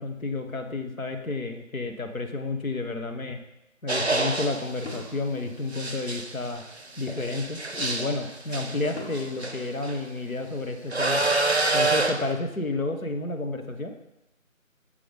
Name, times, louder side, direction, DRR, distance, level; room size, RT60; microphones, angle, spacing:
voice 1, 0.0-3.4 3.8-6.6 7.0-11.3 11.7-13.9, left 3 dB, 80° left, 5 dB, 1.1 m, -31 dB
sound 1, 3.9-5.0 5.7-10.0 10.9-12.3, right 2 dB, 50° right, 0.5 m, -27 dB
sound 2, 4.9-6.4 9.0-10.8, left 2 dB, 50° left, 1.7 m, -45 dB
6.7 x 3.7 x 5.2 m, 0.90 s
figure-of-eight pair, 175°, 41 cm